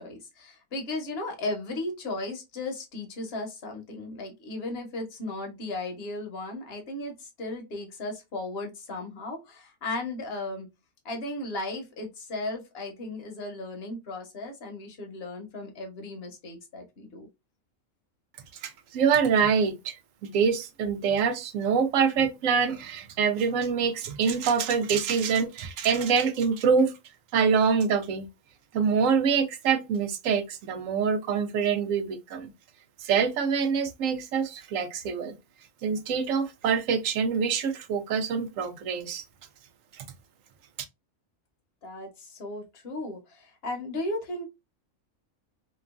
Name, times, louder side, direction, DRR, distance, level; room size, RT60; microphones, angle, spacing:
voice 1, 0.0-10.7 11.0-17.3 41.8-44.5, left 2 dB, 50° left, 1.0 m, -36 dB
voice 2, 18.6-19.9 20.2-26.9 27.3-28.3 28.7-32.5 33.0-35.3 35.8-39.3 40.0-40.1, right 6 dB, 75° right, 0.9 m, -25 dB
2.9 x 2.3 x 2.3 m
omnidirectional pair, 1.4 m